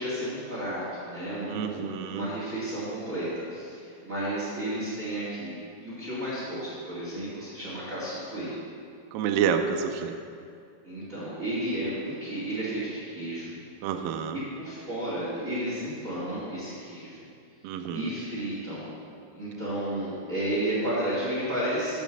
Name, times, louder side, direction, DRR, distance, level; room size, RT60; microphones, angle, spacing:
voice 1, 0.0-8.5 10.8-13.5 14.6-17.3 17.9-18.9 19.3-22.0, right 1 dB, 40° right, -8 dB, 1.1 m, -32 dB
voice 2, 1.5-2.3 9.1-10.2 13.8-14.4 17.6-18.1, right 7 dB, 85° right, 6 dB, 2.0 m, -29 dB
7.7 x 5.2 x 6.9 m, 2.4 s
omnidirectional pair, 4.6 m